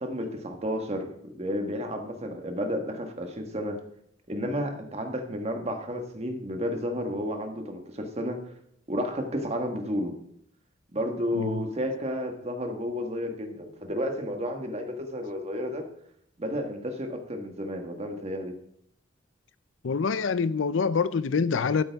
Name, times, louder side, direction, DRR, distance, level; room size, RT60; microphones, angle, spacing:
voice 1, 0.0-3.8 4.3-8.4 8.9-10.1 10.9-15.8 16.4-18.5, equal, 35° right, 1.5 m, -32 dB
voice 2, 19.8-21.8, left 5 dB, 85° left, 0.5 m, -25 dB
12.0 x 9.1 x 3.5 m
head